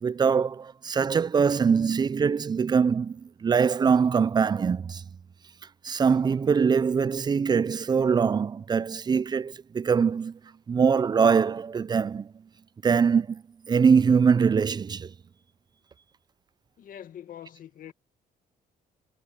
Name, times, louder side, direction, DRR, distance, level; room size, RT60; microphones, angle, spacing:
voice 1, 0.0-5.0 5.8-10.4 10.7-12.3 12.8-15.1, right 6 dB, 30° right, 0.4 m, -23 dB
voice 2, 16.8-17.9, left 10 dB, 65° left, 1.8 m, -44 dB
cardioid pair, 95°, 15 cm